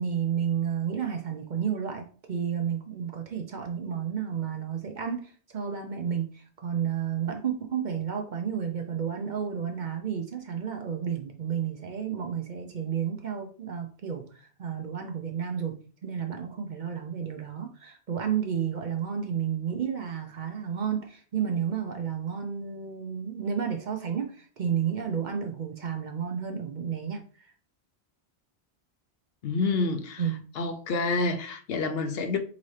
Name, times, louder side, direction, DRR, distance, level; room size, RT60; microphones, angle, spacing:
voice 1, 0.0-27.2 30.2-30.4, right 8 dB, 50° right, 0.7 m, -31 dB
voice 2, 29.4-30.2 30.6-32.4, left 3 dB, 70° left, 0.8 m, -28 dB
4.2 x 3.9 x 3.2 m
omnidirectional pair, 1.1 m